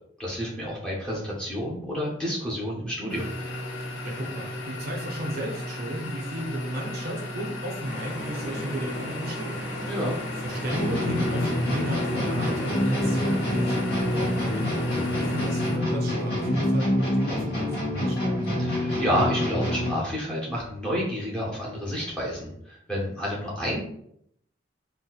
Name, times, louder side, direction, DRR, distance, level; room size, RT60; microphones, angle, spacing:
voice 1, 0.2-3.3 9.9-10.2 14.9-15.2 18.6-23.8, equal, 5° left, -5 dB, 0.7 m, -30 dB
sound 1, 3.1-15.8, left 1 dB, 85° left, 0.6 m, -35 dB
voice 2, 3.8-9.6 10.1-14.6 14.9-18.4, equal, 50° right, -1 dB, 0.6 m, -35 dB
sound 2, 7.8-15.5, left 1 dB, 35° left, 1.3 m, -37 dB
sound 3, 10.7-20.1, left 1 dB, 60° left, 1.2 m, -26 dB
4.1 x 2.2 x 2.3 m, 0.71 s
head